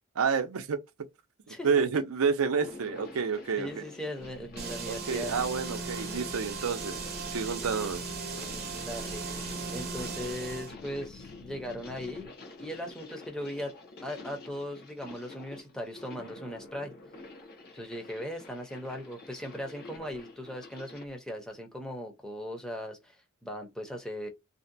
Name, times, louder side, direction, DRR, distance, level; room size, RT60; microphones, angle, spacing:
voice 1, 0.2-0.8 1.5-3.8 4.9-6.9 7.3-8.0, right 5 dB, 80° right, 0.5 m, -29 dB
sound 1, 2.5-21.1, left 2 dB, 50° left, 0.8 m, -48 dB
voice 2, 3.6-5.4 8.8-9.3 9.7-12.3 12.6-13.8 14.0-16.9 17.7-24.3, equal, 5° left, 0.6 m, -38 dB
sound 2, 4.2-12.3, left 4 dB, 65° left, 0.4 m, -50 dB
sound 3, 4.6-10.7, right 4 dB, 50° right, 0.8 m, -37 dB
2.6 x 2.1 x 2.5 m
head